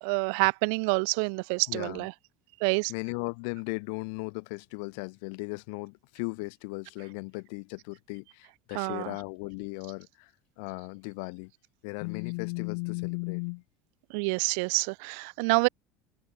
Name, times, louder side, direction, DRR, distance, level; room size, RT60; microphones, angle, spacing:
voice 1, 0.0-2.1 2.6-2.9 8.7-9.1 14.1-15.7, right 35 dB, 75° right, 1.5 m, -27 dB
voice 2, 1.7-2.1 2.9-10.3 10.6-11.5 11.8-13.6, left 34 dB, 75° left, 6.3 m, -36 dB
cardioid pair, 160°, 0 cm